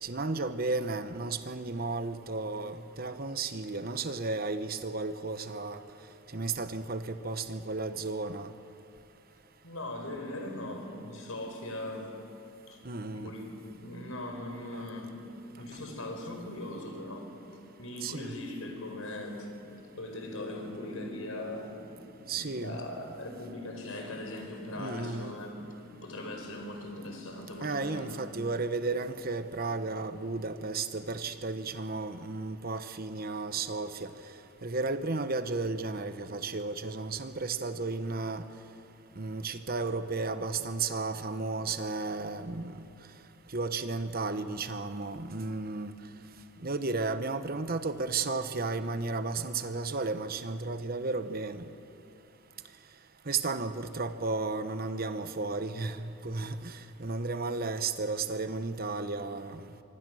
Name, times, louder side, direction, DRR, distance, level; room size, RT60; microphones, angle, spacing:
voice 1, 0.0-5.8 6.3-8.5 12.8-13.3 14.7-14.8 18.0-18.3 22.3-22.8 24.7-25.3 27.6-34.1 34.6-38.4 39.2-42.8 43.5-46.0 46.6-51.7 53.3-59.7, right 3 dB, 45° right, 1.0 m, -33 dB
voice 2, 9.6-12.1 12.7-28.2, left 1 dB, 85° left, 4.5 m, -40 dB
25.0 x 24.5 x 6.4 m
head